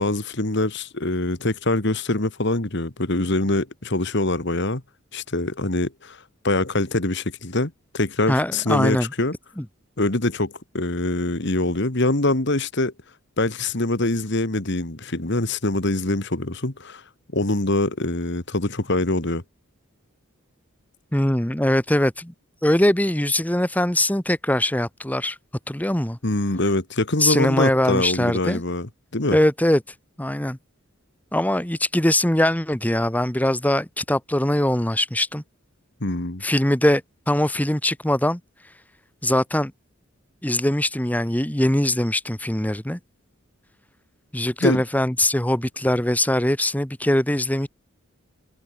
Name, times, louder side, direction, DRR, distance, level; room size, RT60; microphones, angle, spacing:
voice 1, 0.0-4.8 5.1-6.2 6.4-9.3 10.0-12.9 13.4-17.0 17.3-19.4 26.2-29.4 36.0-36.4 44.6-44.8, left 2 dB, 55° left, 2.1 m, -24 dB
voice 2, 8.3-9.1 9.6-9.7 21.1-22.3 22.6-25.4 25.7-26.2 27.2-28.6 29.3-29.8 30.2-30.6 31.3-35.4 36.4-38.4 39.2-39.7 40.4-43.0 44.3-47.7, left 1 dB, 10° left, 1.2 m, -21 dB
head